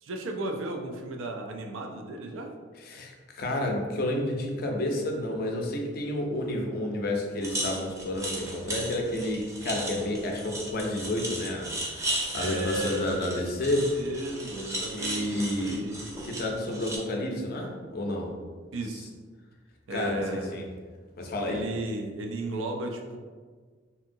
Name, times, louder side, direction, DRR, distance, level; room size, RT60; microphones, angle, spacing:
voice 1, 0.0-2.5 12.4-13.4 13.8-16.1 18.7-19.1 19.9-20.7 21.5-23.2, right 1 dB, 90° right, 3 dB, 0.4 m, -35 dB
voice 2, 2.8-13.9 14.9-15.8 16.2-18.3 19.9-20.7 21.2-21.6, left 1 dB, 50° left, 1 dB, 0.4 m, -30 dB
sound 1, 7.4-17.0, right 1 dB, 15° right, 0.3 m, -35 dB
2.7 x 2.6 x 2.6 m, 1.5 s
head